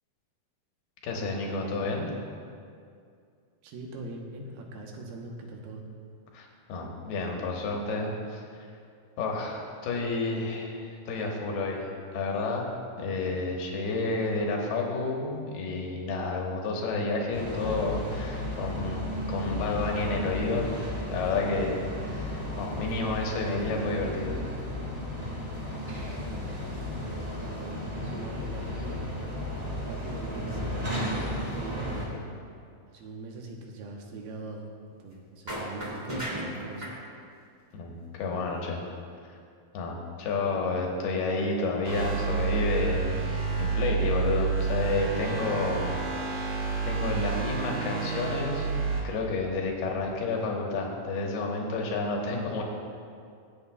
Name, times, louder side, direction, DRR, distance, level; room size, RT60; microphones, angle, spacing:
voice 1, 1.0-2.1 6.3-8.4 9.2-12.7 13.0-20.7 21.1-24.4 37.7-38.8 39.3-39.4 39.7-46.0 46.4-48.7 49.0-52.6, left 3 dB, 85° left, 0 dB, 3.2 m, -30 dB
voice 2, 3.6-5.8 27.4-29.1 29.6-32.2 32.9-34.7 35.0-36.9, right 2 dB, 80° right, 1 dB, 2.9 m, -42 dB
sound 1, 17.3-32.0, left 1 dB, 10° right, 1.9 m, -34 dB
sound 2, 35.5-37.0, equal, 30° right, 0.7 m, -34 dB
sound 3, 41.8-49.0, right 5 dB, 50° right, 2.8 m, -29 dB
23.5 x 8.2 x 2.3 m, 2.3 s
omnidirectional pair, 4.4 m